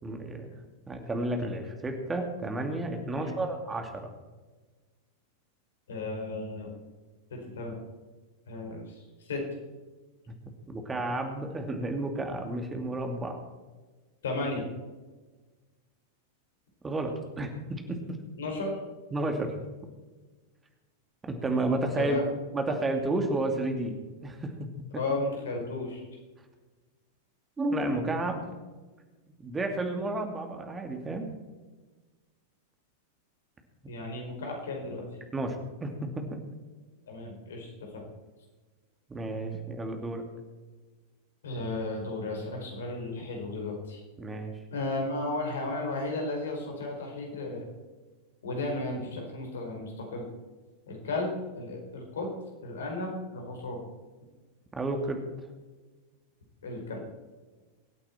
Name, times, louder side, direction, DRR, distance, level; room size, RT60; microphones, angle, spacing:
voice 1, 0.0-0.5 0.9-4.0 10.3-10.4 10.7-13.4 16.8-18.2 19.1-19.6 21.3-22.2 22.5-24.0 24.2-24.5 27.6-28.5 29.4-31.3 35.3-35.6 35.8-36.4 39.1-40.2 44.2-44.5 54.8-55.2, right 2 dB, 15° right, 4 dB, 2.7 m, -31 dB
voice 2, 5.9-6.7 7.3-7.8 8.5-9.4 14.2-14.6 18.4-18.8 22.0-22.2 24.9-26.0 33.9-35.1 37.1-38.1 39.5-39.6 41.4-44.0 44.7-47.7 48.4-50.3 50.9-52.3 52.6-53.8 56.6-57.0, left 2 dB, 70° left, 1 dB, 4.7 m, -34 dB
24.0 x 8.8 x 4.5 m, 1.3 s
figure-of-eight pair, 95°, 0 cm